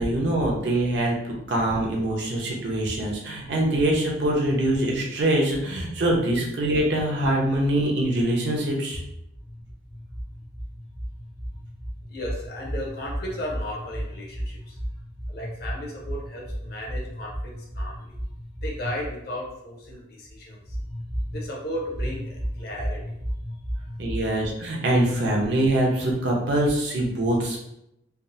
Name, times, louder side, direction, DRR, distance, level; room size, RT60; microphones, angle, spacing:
voice 1, 0.0-9.0 24.0-27.6, right 1 dB, 70° right, -1 dB, 0.7 m, -24 dB
voice 2, 9.4-24.4, equal, 55° left, -2 dB, 0.8 m, -33 dB
3.4 x 2.0 x 2.6 m, 0.81 s
head